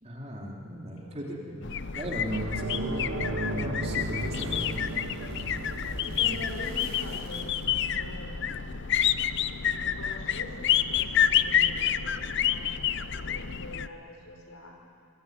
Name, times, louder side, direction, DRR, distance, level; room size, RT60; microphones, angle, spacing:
voice 1, 0.0-4.7, equal, 30° right, -1 dB, 3.8 m, -37 dB
voice 2, 0.9-2.2 6.0-8.4 9.7-14.7, left 1 dB, 80° left, 1 dB, 5.6 m, -45 dB
sound 1, 1.6-13.9, left 9 dB, 50° left, 0.7 m, -29 dB
sound 2, 2.3-11.2 11.6-11.7 13.8-13.9, right 1 dB, 90° right, 2.5 m, -37 dB
sound 3, 3.8-8.1, right 1 dB, 50° right, 4.8 m, -44 dB
26.5 x 22.5 x 9.5 m, 2.3 s
head